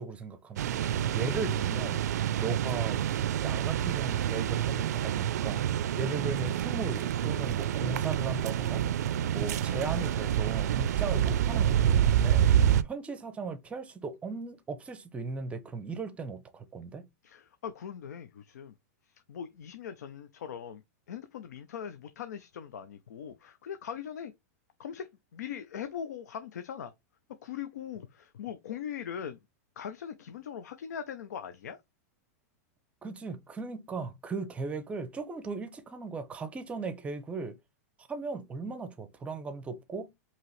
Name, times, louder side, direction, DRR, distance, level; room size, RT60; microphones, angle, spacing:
voice 1, 0.0-3.0 3.3-5.6 6.0-8.8 9.3-12.5 12.8-17.1 33.0-37.6 38.0-40.1, right 4 dB, 15° right, 0.6 m, -37 dB
sound 1, 0.6-12.8, right 10 dB, 80° right, 0.4 m, -27 dB
voice 2, 17.2-18.7 19.1-20.8 21.1-24.3 24.8-26.9 27.4-29.4 29.8-31.8, left 8 dB, 85° left, 0.5 m, -40 dB
4.8 x 2.9 x 3.1 m
supercardioid pair, 145°, 9 cm